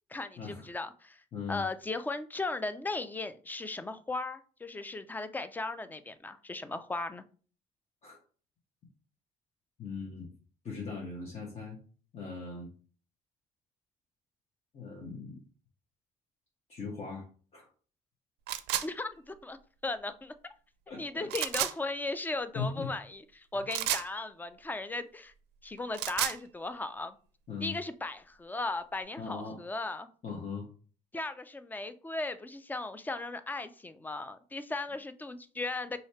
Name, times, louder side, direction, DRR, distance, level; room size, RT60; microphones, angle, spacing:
voice 1, 0.1-1.2 1.5-7.2 18.8-19.6 19.8-20.3 21.0-25.3 25.6-27.2 27.6-30.1 31.1-36.0, left 2 dB, 10° left, 0.3 m, -37 dB
voice 2, 1.3-1.6 8.0-8.2 9.8-10.3 10.6-11.8 12.1-12.7 14.7-15.4 16.7-17.2 17.5-17.7 20.9-21.3 22.5-22.9 27.5-27.8 29.2-29.6 30.2-30.7, left 4 dB, 40° left, 1.1 m, -39 dB
sound 1, 18.5-18.9 21.3-21.7 23.7-24.1 25.8-26.4, right 13 dB, 80° right, 0.4 m, -31 dB
3.1 x 2.8 x 4.3 m
cardioid pair, 110°, 17 cm